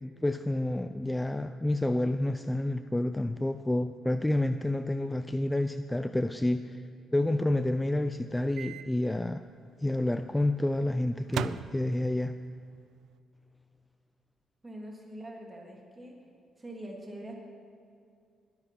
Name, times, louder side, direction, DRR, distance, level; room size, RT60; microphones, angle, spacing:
voice 1, 0.0-6.8 7.1-9.4 9.8-12.4, left 1 dB, 10° left, 10 dB, 0.4 m, -29 dB
Microwave oven, 8.6-8.9 9.2-9.3 11.3-12.3, right 9 dB, 75° right, 0.4 m, -37 dB
voice 2, 14.6-16.1 16.6-17.3, right 1 dB, 20° right, -1 dB, 3.2 m, -43 dB
20.5 x 8.0 x 6.0 m, 2.4 s
cardioid pair, 90°, 0 cm